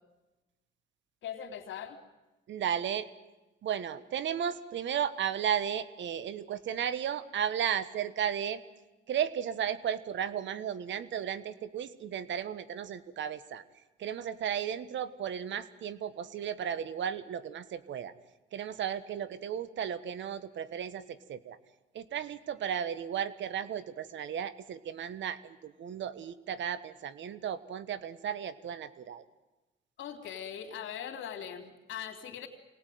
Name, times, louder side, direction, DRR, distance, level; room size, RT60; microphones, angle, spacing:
voice 1, 1.2-2.0 30.0-32.5, left 8 dB, 75° left, 4 dB, 3.5 m, -40 dB
voice 2, 2.5-3.1 3.6-8.6 9.1-13.6 14.0-18.1 18.5-21.6 21.9-29.2, right 9 dB, 70° right, 15 dB, 1.4 m, -34 dB
25.0 x 19.0 x 9.4 m, 1.1 s
cardioid pair, 90°, 20 cm